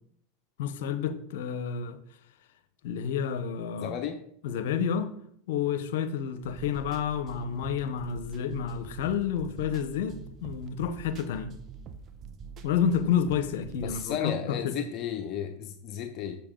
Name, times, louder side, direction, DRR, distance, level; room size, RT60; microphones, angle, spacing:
voice 1, 0.6-2.0 2.8-3.9 4.4-5.1 5.5-11.6 12.6-14.8, left 8 dB, 75° left, 0.8 m, -30 dB
voice 2, 3.8-4.2 13.8-16.4, left 8 dB, 45° left, 0.8 m, -33 dB
sound 1, 6.4-14.1, right 6 dB, 40° right, 0.9 m, -45 dB
7.1 x 6.8 x 3.8 m
hypercardioid pair, 105°, 0 cm